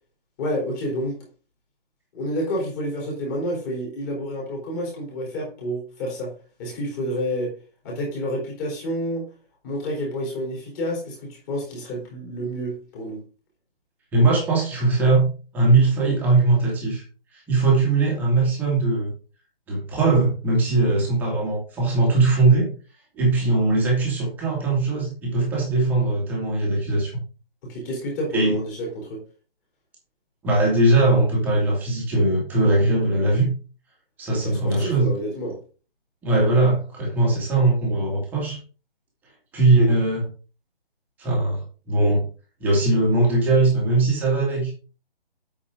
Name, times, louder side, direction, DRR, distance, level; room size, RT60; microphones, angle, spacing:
voice 1, 0.4-1.3 2.1-7.5 7.8-9.3 9.6-13.2 27.6-29.2 34.3-35.6, equal, 20° left, 3.6 m, -29 dB
voice 2, 14.1-17.0 17.5-19.1 19.7-22.7 23.1-27.1 28.3-28.6 30.4-33.5 34.2-35.1 36.2-38.6 39.5-40.3 41.2-42.2 42.6-44.7, right 2 dB, 5° right, 2.1 m, -20 dB
8.6 x 7.3 x 3.8 m
hypercardioid pair, 170°, 31 cm